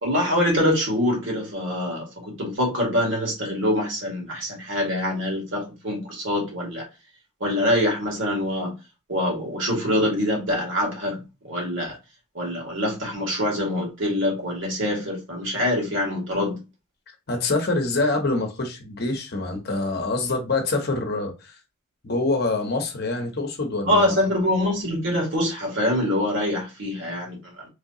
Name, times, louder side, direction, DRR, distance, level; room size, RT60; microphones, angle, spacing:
voice 1, 0.0-6.8 7.4-8.7 9.1-12.0 12.3-16.6 23.8-27.7, left 1 dB, 65° right, 1.8 m, -24 dB
voice 2, 17.3-21.6 22.0-24.2, left 3 dB, 50° left, 0.9 m, -25 dB
3.2 x 2.9 x 2.7 m
head